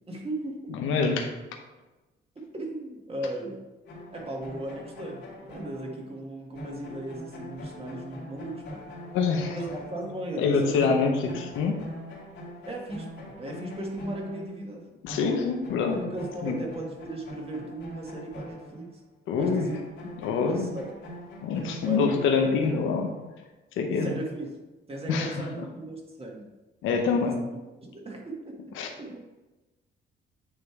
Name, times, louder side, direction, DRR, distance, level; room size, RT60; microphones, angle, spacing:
voice 1, 0.1-0.7 2.5-3.6 4.1-8.8 9.5-10.9 12.7-14.8 15.9-19.0 19.3-19.8 20.3-20.9 21.8-22.1 23.9-24.6 24.9-26.5 26.8-27.3 27.8-29.2, right 1 dB, 30° right, -1 dB, 1.9 m, -37 dB
voice 2, 0.7-1.3 9.0-9.6 10.4-11.8 15.0-16.0 16.4-16.5 19.3-19.7 20.2-20.7 21.4-23.1 23.8-24.1 25.1-25.3 26.8-27.3 28.8-28.9, left 5 dB, 90° left, 2 dB, 0.9 m, -25 dB
sound 1, 3.8-10.5 10.7-19.0 19.4-23.4, equal, 65° left, 2.2 m, -42 dB
9.1 x 3.3 x 4.7 m, 1.1 s
cardioid pair, 90°, 20 cm